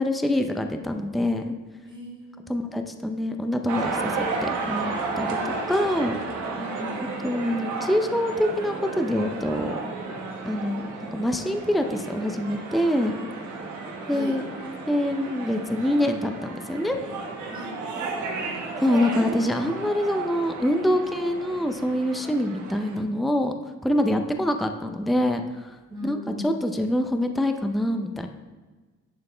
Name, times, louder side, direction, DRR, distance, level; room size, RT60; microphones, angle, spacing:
voice 1, 0.0-1.5 2.5-5.4 5.7-6.2 7.2-9.8 10.4-10.8 11.1-13.1 14.1-14.4 14.9-17.0 18.8-23.5 23.8-25.4 26.0-28.3, left 1 dB, ahead, 5 dB, 0.5 m, -25 dB
voice 2, 1.9-2.5 6.4-7.1 14.0-14.4 17.5-17.8 18.2-18.6 25.9-26.5, equal, 15° right, -3 dB, 2.0 m, -38 dB
sound 1, 3.7-23.0, right 3 dB, 75° right, 1.3 m, -33 dB
11.0 x 4.0 x 3.3 m, 1.3 s
cardioid pair, 90°, 30 cm